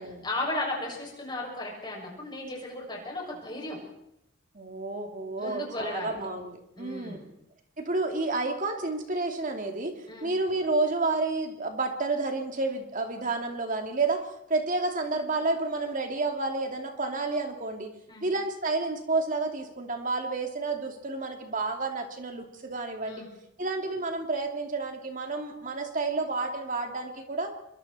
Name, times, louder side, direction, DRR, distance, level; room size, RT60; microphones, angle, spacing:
voice 1, 0.0-3.8 5.4-6.1 6.8-7.3 10.1-10.3 18.1-18.3 23.0-23.3, left 2 dB, 20° left, -1 dB, 6.5 m, -35 dB
voice 2, 4.5-7.2 7.8-14.2 14.5-17.9 18.2-23.2 23.6-27.5, right 3 dB, 40° right, 4 dB, 2.8 m, -30 dB
26.0 x 23.0 x 4.4 m, 0.79 s
head